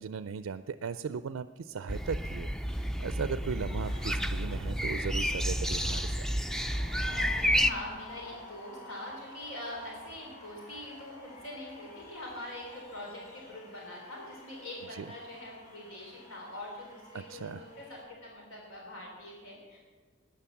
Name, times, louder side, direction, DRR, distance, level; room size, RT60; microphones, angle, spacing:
voice 1, 0.0-6.3 15.0-15.1 17.1-17.6, right 6 dB, 85° right, 13 dB, 0.4 m, -37 dB
sound 1, 1.9-7.7, equal, 5° left, 0.4 m, -30 dB
sound 2, 3.6-18.0, left 1 dB, 40° left, 4.6 m, -50 dB
voice 2, 7.0-19.8, left 1 dB, 80° left, -1 dB, 3.6 m, -43 dB
13.0 x 9.9 x 7.0 m, 1.5 s
head